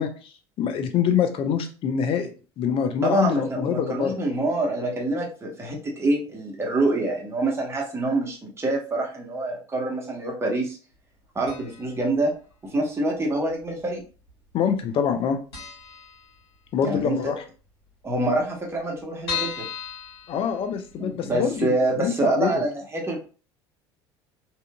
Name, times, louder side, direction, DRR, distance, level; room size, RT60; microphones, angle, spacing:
voice 1, 0.0-2.3 2.6-4.1 14.5-15.4 16.7-17.5 20.3-22.5, left 7 dB, 45° left, 7 dB, 0.5 m, -25 dB
voice 2, 3.0-10.8 11.3-12.3 12.7-14.0 16.8-17.2 18.0-19.7 21.0-23.2, right 2 dB, 20° right, 0 dB, 1.0 m, -26 dB
sound 1, 11.5-12.0 12.2-12.3 13.3-14.0 14.3-14.4 14.7-14.8 15.2-15.3 15.5-16.8 17.2-17.3 17.6-17.7 17.9-18.0 18.5-21.1 21.5-21.6 22.0-22.1, left 7 dB, 75° left, 1.4 m, -35 dB
2.7 x 2.4 x 2.2 m, 0.37 s
hypercardioid pair, 70°, 13 cm